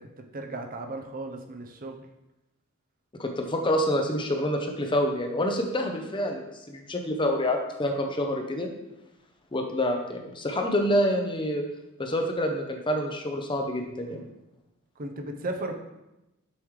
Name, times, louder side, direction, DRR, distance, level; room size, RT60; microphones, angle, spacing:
voice 1, 0.0-2.0 15.0-15.7, right 2 dB, 40° right, 4 dB, 0.7 m, -35 dB
voice 2, 3.2-8.7 9.5-11.6 12.0-14.2, left 1 dB, 20° left, 4 dB, 0.7 m, -27 dB
7.1 x 5.2 x 3.1 m, 0.94 s
head